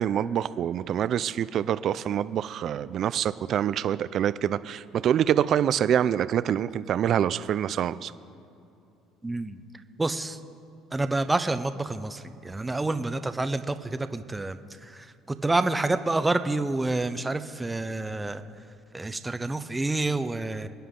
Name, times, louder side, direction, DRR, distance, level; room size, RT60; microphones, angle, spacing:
voice 1, 0.0-8.1, right 9 dB, 50° right, 15 dB, 0.5 m, -26 dB
voice 2, 9.2-9.6 10.0-10.4 10.9-18.4 18.9-20.7, right 2 dB, 10° right, 10 dB, 0.7 m, -28 dB
27.5 x 10.0 x 3.8 m, 2.7 s
cardioid pair, 115°, 0 cm